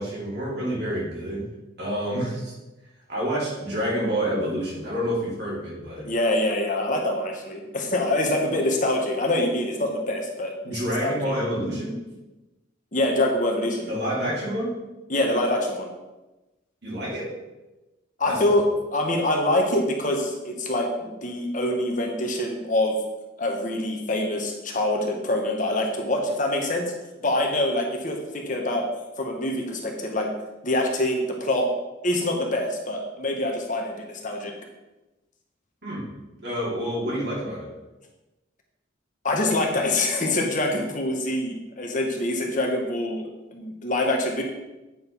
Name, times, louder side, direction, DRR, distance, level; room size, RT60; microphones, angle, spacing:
voice 1, 0.0-1.5 1.8-2.5 3.1-6.1 10.6-12.0 13.9-14.7 16.8-17.3 18.2-18.4 35.8-36.1 36.4-37.7, equal, 55° right, -5 dB, 3.1 m, -28 dB
voice 2, 6.0-11.3 12.9-13.9 15.1-15.9 18.2-18.7 18.9-23.0 23.4-26.9 27.2-28.9 29.2-30.3 30.6-31.7 32.0-34.5 39.2-44.4, left 1 dB, 40° left, 1 dB, 1.2 m, -25 dB
8.9 x 5.2 x 5.4 m, 1.1 s
head